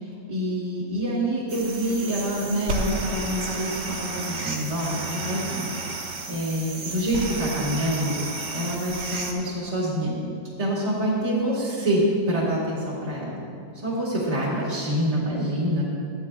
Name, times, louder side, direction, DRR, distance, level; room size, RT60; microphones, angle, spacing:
voice 1, 0.3-6.0 6.3-8.2 8.5-10.3 10.6-13.4 13.8-15.8, equal, 25° right, -8 dB, 1.9 m, -26 dB
sound 1, 1.5-9.3, right 3 dB, 55° right, 1.2 m, -32 dB
14.0 x 10.5 x 2.4 m, 2.3 s
omnidirectional pair, 1.6 m